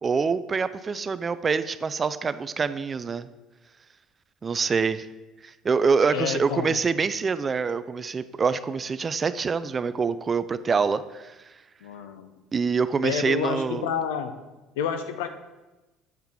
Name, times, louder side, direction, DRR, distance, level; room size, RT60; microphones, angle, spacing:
voice 1, 0.0-3.3 4.4-5.1 5.4-11.3 12.5-13.9, right 5 dB, 30° right, 14 dB, 0.3 m, -25 dB
voice 2, 6.1-6.8 11.8-12.3 13.0-14.3 14.8-15.3, left 7 dB, 75° left, 8 dB, 0.5 m, -29 dB
7.2 x 4.4 x 3.6 m, 1.1 s
hypercardioid pair, 60°, 0 cm